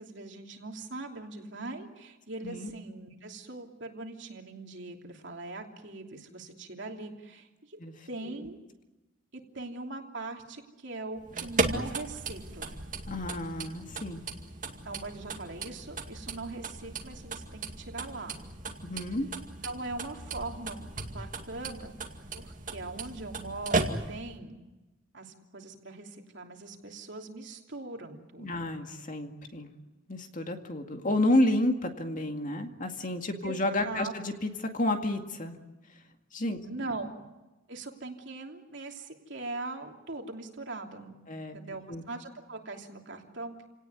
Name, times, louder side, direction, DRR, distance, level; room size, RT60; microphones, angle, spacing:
voice 1, 0.0-7.8 8.1-8.6 9.3-12.8 14.8-18.4 19.6-21.9 22.3-24.6 25.1-28.5 33.4-33.6 33.8-34.1 36.6-37.2 37.7-41.2 41.5-43.7, right 2 dB, 60° right, 2 dB, 3.0 m, -41 dB
sound 1, 11.2-24.4, right 3 dB, 40° right, 2.2 m, -36 dB
voice 2, 13.1-14.2 18.8-19.3 28.4-29.7 30.1-35.6 36.3-36.6 41.3-41.6 41.9-42.0, left 1 dB, 40° left, 5 dB, 2.1 m, -30 dB
29.0 x 18.0 x 9.4 m, 1.1 s
head